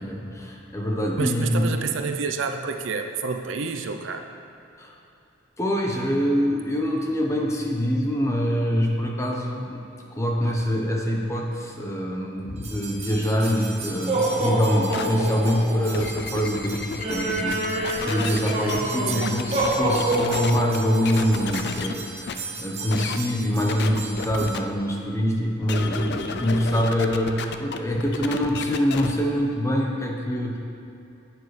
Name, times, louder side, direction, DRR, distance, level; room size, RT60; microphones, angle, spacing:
voice 1, 0.0-1.6 4.8-4.9 5.6-9.8 10.1-30.6, equal, 15° left, -1 dB, 1.0 m, -25 dB
voice 2, 1.2-4.3 18.2-19.5, right 4 dB, 75° right, 6 dB, 0.6 m, -29 dB
sound 1, 12.6-24.5, right 1 dB, 35° right, 1.3 m, -28 dB
sound 2, 14.9-15.1 15.7-18.8 19.2-20.8 21.1-21.9 22.3-22.4 22.9-23.2 23.7-24.6 25.6-29.1, left 5 dB, 55° left, 0.4 m, -32 dB
11.0 x 9.1 x 3.3 m, 2.7 s
head